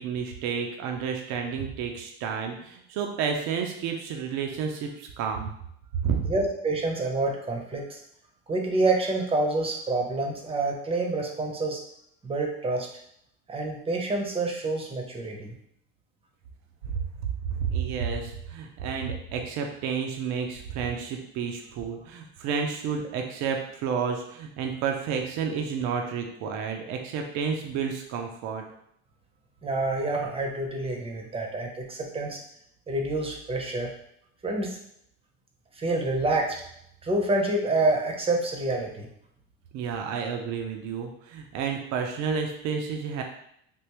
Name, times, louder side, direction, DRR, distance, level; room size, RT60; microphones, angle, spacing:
voice 1, 0.0-5.5 6.0-6.3 16.8-16.9 17.5-28.6 39.7-43.2, right 6 dB, 65° right, 3 dB, 0.5 m, -30 dB
voice 2, 6.2-8.0 8.5-11.8 12.2-12.9 13.5-15.5 29.6-32.4 32.9-33.9 34.4-34.8 35.8-36.6 37.0-39.1, right 2 dB, 20° right, 1 dB, 0.7 m, -27 dB
3.5 x 2.5 x 2.9 m, 0.72 s
supercardioid pair, 105°, 30 cm